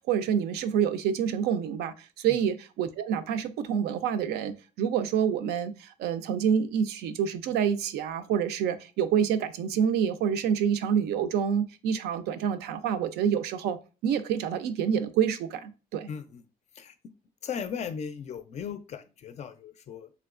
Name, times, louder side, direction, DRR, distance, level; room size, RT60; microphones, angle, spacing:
voice 1, 0.0-13.8 14.0-16.1, right 8 dB, 75° right, 0.4 m, -27 dB
voice 2, 16.1-16.4 16.8-17.1 17.4-20.1, left 7 dB, 40° left, 0.4 m, -37 dB
3.3 x 2.9 x 2.4 m
cardioid pair, 110°, 17 cm